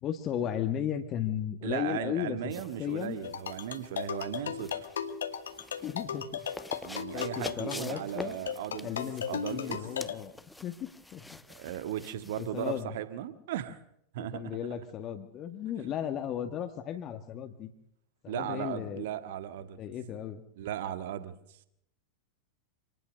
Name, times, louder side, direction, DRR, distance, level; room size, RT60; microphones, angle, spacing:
voice 1, 0.0-2.5 2.8-3.2 5.8-6.4 7.1-8.4 8.8-10.3 10.6-11.2 12.4-12.9 14.2-17.7 18.2-19.1 19.8-20.4, left 9 dB, 30° left, 7 dB, 1.8 m, -35 dB
voice 2, 1.6-4.9 6.8-8.9 9.3-9.8 11.5-13.8 14.1-14.6 18.3-19.8 20.6-21.6, right 11 dB, 55° right, 11 dB, 1.7 m, -37 dB
sound 1, 2.5-12.8, left 2 dB, 5° left, 1.1 m, -47 dB
sound 2, 3.2-10.1, left 8 dB, 65° left, 2.0 m, -37 dB
27.0 x 19.5 x 6.5 m, 0.74 s
figure-of-eight pair, 90°, 0 cm